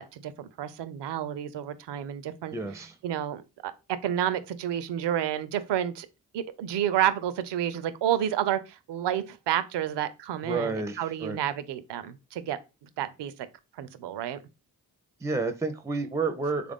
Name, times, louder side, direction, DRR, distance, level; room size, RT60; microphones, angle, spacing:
voice 1, 0.0-2.6 3.0-3.7 4.0-6.1 6.3-13.3 13.8-14.4, right 11 dB, 80° right, 0.5 m, -30 dB
voice 2, 2.5-2.9 10.4-11.4 15.2-16.7, right 3 dB, 10° right, 0.5 m, -30 dB
3.4 x 2.5 x 3.5 m
cardioid pair, 45°, 41 cm